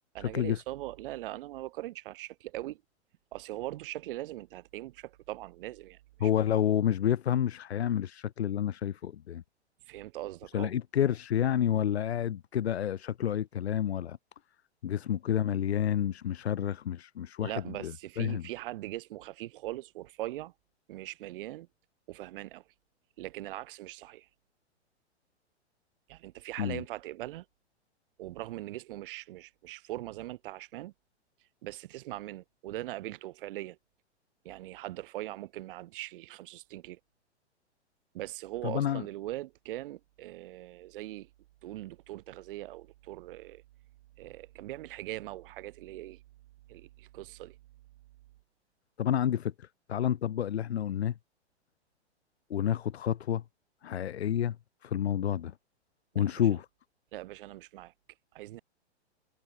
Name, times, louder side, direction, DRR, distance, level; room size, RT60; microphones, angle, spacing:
voice 1, 0.1-2.8 3.3-6.3 9.8-10.7 17.4-20.5 20.9-21.7 22.1-22.6 23.2-24.3 26.1-27.5 28.2-30.9 31.6-33.8 34.4-37.0 38.1-41.3 41.6-43.6 44.2-46.2 46.7-47.6 56.1-56.5 57.1-57.9 58.3-58.6, right 16 dB, 50° right, 2.1 m, -41 dB
voice 2, 6.2-9.4 10.5-14.2 14.8-17.5 17.8-17.9 18.2-18.4 26.6-26.8 38.6-39.0 49.0-51.1 52.5-53.4 53.8-54.6 54.8-55.5 56.1-56.6, left 10 dB, 65° left, 1.5 m, -29 dB
figure-of-eight pair, 110°, 34 cm